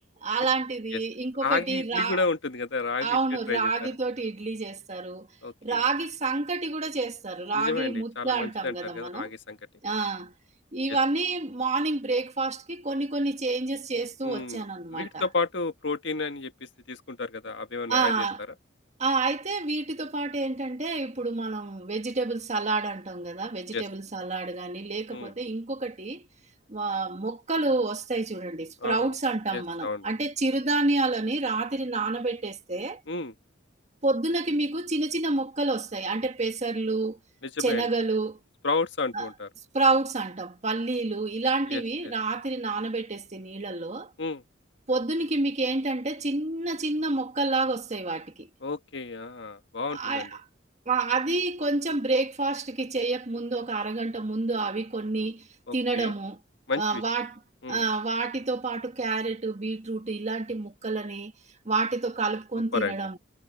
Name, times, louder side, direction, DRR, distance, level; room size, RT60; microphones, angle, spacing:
voice 1, 0.2-2.2 3.0-5.3 5.6-9.3 9.8-10.3 10.7-15.3 17.9-18.4 19.0-26.3 26.7-33.0 34.0-37.2 37.6-38.4 39.1-39.3 39.7-44.1 44.9-48.5 49.9-50.4 50.8-55.5 55.7-56.4 56.8-57.4 57.7-61.3 61.6-63.2, right 3 dB, 35° right, 1.6 m, -28 dB
voice 2, 1.4-3.2 3.5-3.7 5.4-5.8 7.5-9.6 14.2-14.6 14.9-18.2 23.7-23.8 25.1-25.3 28.8-29.1 29.5-30.1 33.1-33.3 37.4-37.9 38.6-39.5 41.7-41.8 44.2-44.4 48.6-50.3 55.7-56.1 56.7-57.0 57.6-57.8 62.7-63.0, left 3 dB, 65° left, 1.7 m, -31 dB
head